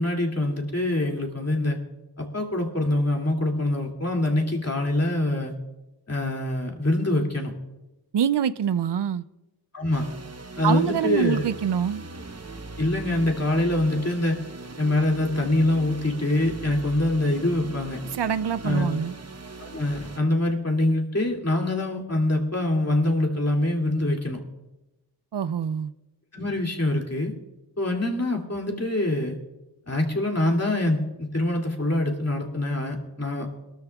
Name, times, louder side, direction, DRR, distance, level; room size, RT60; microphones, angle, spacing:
voice 1, 0.0-1.8 2.2-5.5 6.1-7.5 9.7-10.0 10.6-11.4 12.8-14.4 14.8-18.0 18.6-19.0 19.6-24.4 26.3-27.3 27.8-29.4 29.9-33.5, left 1 dB, 35° left, 1 dB, 2.4 m, -24 dB
voice 2, 8.1-9.2 10.6-12.0 18.1-19.1 25.3-25.9, right 8 dB, 75° right, 15 dB, 0.5 m, -25 dB
sound 1, 9.9-20.2, right 3 dB, 35° right, 0.9 m, -40 dB
21.5 x 13.0 x 2.3 m, 1.0 s
wide cardioid pair, 40°, 41 cm